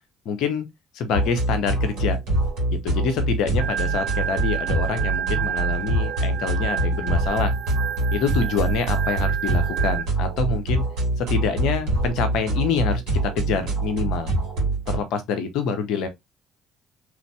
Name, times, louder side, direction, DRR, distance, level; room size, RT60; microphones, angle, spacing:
voice 1, 0.2-0.7 0.9-2.2 2.7-7.5 8.1-10.8 11.2-14.3 14.9-16.1, left 5 dB, 65° left, 0.7 m, -26 dB
sound 1, 1.1-15.0, right 2 dB, 65° right, 1.9 m, -25 dB
Organ, 3.6-10.0, right 9 dB, 80° right, 0.6 m, -30 dB
3.1 x 2.5 x 3.2 m
figure-of-eight pair, 50°, 0 cm